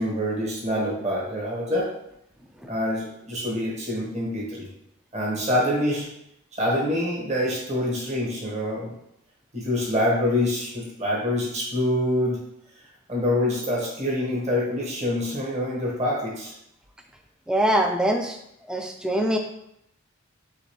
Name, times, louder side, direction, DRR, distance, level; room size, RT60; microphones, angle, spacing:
voice 1, 0.0-1.9 2.7-4.7 5.1-6.1 6.6-8.9 9.5-12.4 13.1-16.5, left 1 dB, 30° right, -4 dB, 1.3 m, -26 dB
voice 2, 17.5-18.4 18.7-19.4, right 1 dB, 5° right, 4 dB, 0.3 m, -23 dB
4.9 x 3.3 x 3.1 m, 0.77 s
head